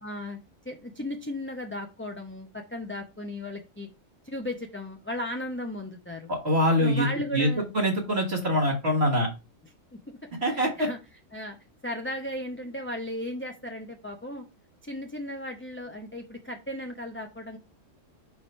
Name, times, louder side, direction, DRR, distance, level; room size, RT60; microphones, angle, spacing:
voice 1, 0.0-0.4 0.7-3.9 4.2-6.3 6.8-7.6 10.1-10.2 10.4-11.0 11.3-11.6 11.8-14.4 14.8-17.6, left 1 dB, 10° left, 3 dB, 0.6 m, -35 dB
voice 2, 6.3-9.3 10.4-10.9, equal, 50° right, -2 dB, 1.9 m, -24 dB
4.9 x 4.7 x 5.4 m, 0.28 s
omnidirectional pair, 1.4 m